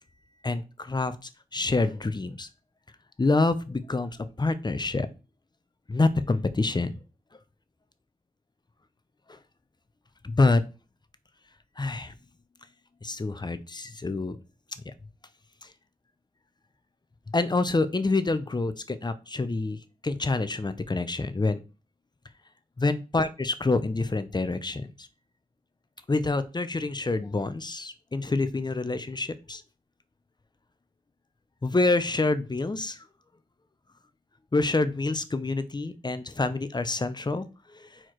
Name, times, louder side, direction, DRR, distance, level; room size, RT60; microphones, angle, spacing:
voice 1, 0.4-1.2 1.5-2.5 3.2-5.1 5.9-6.9 9.3-9.4 10.2-10.6 11.8-12.1 13.0-14.4 17.3-21.6 22.8-25.1 26.1-29.6 31.6-33.0 34.5-37.5 37.7-38.0, left 3 dB, 30° left, 13 dB, 0.7 m, -27 dB
4.6 x 4.5 x 4.5 m, 0.31 s
wide cardioid pair, 80°, 15 cm